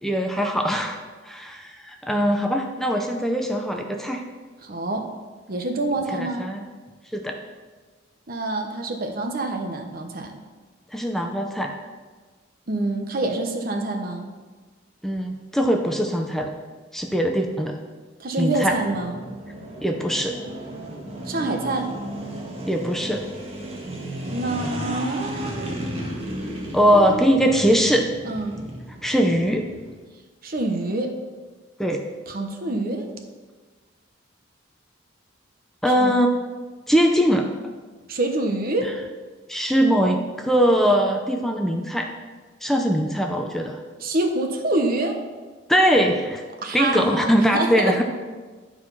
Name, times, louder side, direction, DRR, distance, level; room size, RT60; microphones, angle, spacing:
voice 1, 0.0-1.0 1.2-4.2 6.1-6.7 7.1-7.4 10.9-11.7 15.0-16.5 16.9-17.8 18.4-18.7 19.8-20.3 22.7-23.2 26.7-28.0 29.0-29.7 31.8-32.0 35.8-36.3 36.9-37.5 38.8-38.9 39.5-42.1 42.6-43.8 45.7-46.4 46.7-48.0, equal, ahead, 2 dB, 0.6 m, -21 dB
voice 2, 4.6-5.1 5.5-6.5 8.3-10.4 12.7-14.3 18.2-19.2 21.3-21.9 24.3-25.8 26.9-27.3 28.3-28.6 30.4-31.2 32.3-33.1 35.8-36.2 38.1-38.9 44.0-45.2 46.6-48.0, right 2 dB, 50° right, 4 dB, 1.0 m, -26 dB
sound 1, 18.7-30.0, right 1 dB, 30° right, 1.5 m, -34 dB
11.0 x 4.8 x 5.6 m, 1.4 s
head